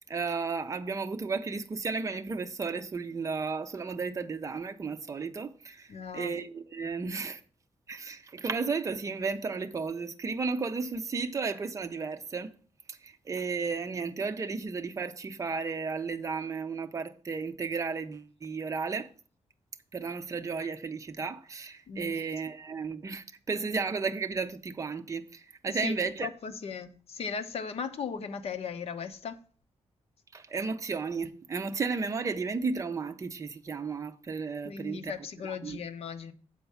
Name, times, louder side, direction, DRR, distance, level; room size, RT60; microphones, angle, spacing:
voice 1, 0.0-7.4 7.9-12.5 12.9-19.1 19.9-26.3 30.3-35.1 35.4-35.8, right 4 dB, 25° right, 0.6 m, -33 dB
voice 2, 5.9-6.4 21.9-22.2 25.8-29.4 34.6-36.3, left 6 dB, 60° left, 0.9 m, -37 dB
8.0 x 4.5 x 6.9 m
wide cardioid pair, 170°, 12 cm